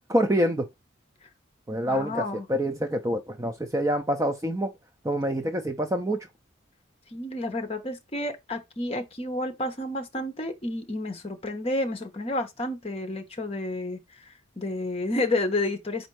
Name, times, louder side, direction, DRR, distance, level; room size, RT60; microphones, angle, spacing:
voice 1, 0.1-0.7 1.7-4.7 5.0-6.3, equal, 15° right, 0.4 m, -26 dB
voice 2, 1.9-2.5 7.1-14.0 14.6-16.1, left 2 dB, 30° left, 0.8 m, -30 dB
4.4 x 2.6 x 4.5 m
head